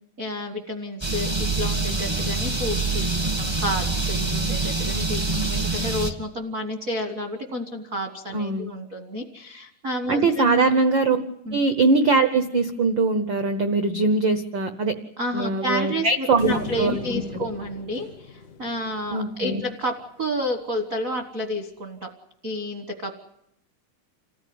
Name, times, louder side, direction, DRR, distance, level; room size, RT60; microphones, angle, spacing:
voice 1, 0.2-10.6 11.4-11.6 15.2-22.1 22.4-23.2, equal, 65° right, 5 dB, 0.8 m, -30 dB
sound 1, 1.0-6.1, right 3 dB, 30° right, 0.4 m, -25 dB
voice 2, 8.3-8.7 10.1-11.2 11.5-14.9 15.3-17.4 19.1-19.6, right 3 dB, 90° right, 9 dB, 1.0 m, -22 dB
sound 2, 16.4-19.8, left 4 dB, 75° left, 0.9 m, -38 dB
26.5 x 15.0 x 9.4 m, 0.79 s
omnidirectional pair, 3.7 m